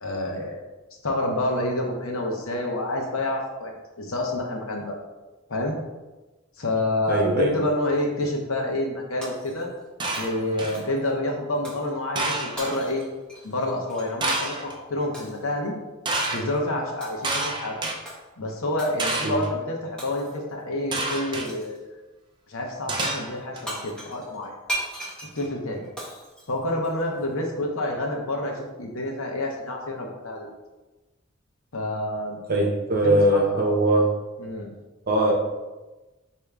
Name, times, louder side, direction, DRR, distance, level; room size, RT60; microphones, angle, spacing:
voice 1, 0.0-0.6 1.0-5.0 5.5-5.8 6.6-9.7 10.2-13.0 13.4-15.7 16.3-17.8 18.4-21.8 22.5-24.5 25.3-25.8 26.5-30.5 31.7-32.4 33.0-33.6 34.4-34.7, left 1 dB, 90° left, 1 dB, 0.9 m, -28 dB
voice 2, 7.1-7.5 19.2-19.4 32.5-34.1 35.1-35.3, right 1 dB, 45° right, -1 dB, 0.9 m, -21 dB
Shatter, 9.2-9.9 10.1-11.1 11.7-11.9 12.6-14.2 15.1-15.5 16.2-16.6 17.0-17.5 18.1-18.2 18.8-19.1 20.0-20.5 21.4-21.8 23.4-23.5 23.7-27.2, right 1 dB, 5° left, 0.9 m, -38 dB
sound 1, 10.0-10.8 12.2-12.8 14.2-14.7 16.1-16.4 17.2-18.0 19.0-19.5 20.9-21.5 22.9-23.6, right 2 dB, 20° right, 0.5 m, -28 dB
4.8 x 2.9 x 3.4 m, 1.1 s
head